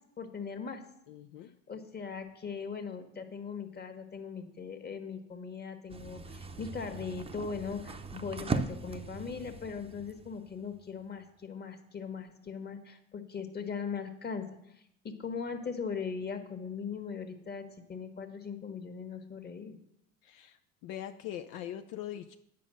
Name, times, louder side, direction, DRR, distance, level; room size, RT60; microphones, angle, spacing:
voice 1, 0.2-0.8 1.7-14.5 15.0-19.8, left 6 dB, 30° left, 6 dB, 1.5 m, -39 dB
voice 2, 1.1-1.5 20.2-22.3, left 11 dB, 65° left, 7 dB, 0.6 m, -42 dB
sound 1, 5.9-11.0, right 4 dB, 15° right, 0.7 m, -39 dB
9.3 x 5.3 x 6.4 m, 0.76 s
supercardioid pair, 85°, 35 cm